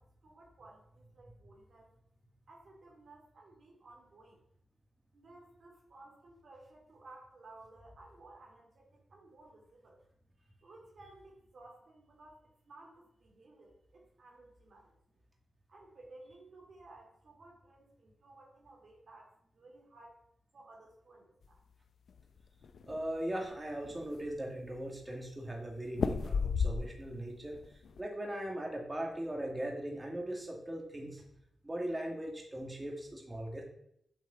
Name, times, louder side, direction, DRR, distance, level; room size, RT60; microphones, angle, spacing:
voice 1, 0.0-1.9 2.5-4.4 5.1-10.0 10.6-14.9 15.7-20.2 20.5-21.6, right 2 dB, 60° right, -2 dB, 2.8 m, -57 dB
sound 1, 22.1-23.0 23.5-23.6 23.8-24.5 25.9-27.2 27.5-28.0, left 5 dB, 75° left, 0.8 m, -33 dB
voice 2, 22.9-31.2 31.6-33.6, right 1 dB, 20° right, 0 dB, 2.4 m, -39 dB
8.2 x 8.0 x 7.0 m, 0.73 s
wide cardioid pair, 100°, 0 cm